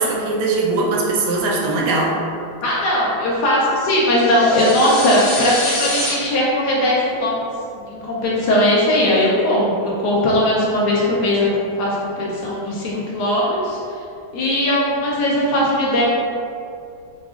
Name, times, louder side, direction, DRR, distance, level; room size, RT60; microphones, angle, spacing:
voice 1, 0.0-2.1, right 3 dB, 75° right, -2 dB, 1.0 m, -20 dB
voice 2, 2.6-7.4 7.9-13.8 14.3-16.0, left 1 dB, 70° left, -6 dB, 1.0 m, -19 dB
sound 1, 4.0-6.1, left 1 dB, 90° left, 0.5 m, -26 dB
4.8 x 2.3 x 2.4 m, 2.5 s
omnidirectional pair, 2.1 m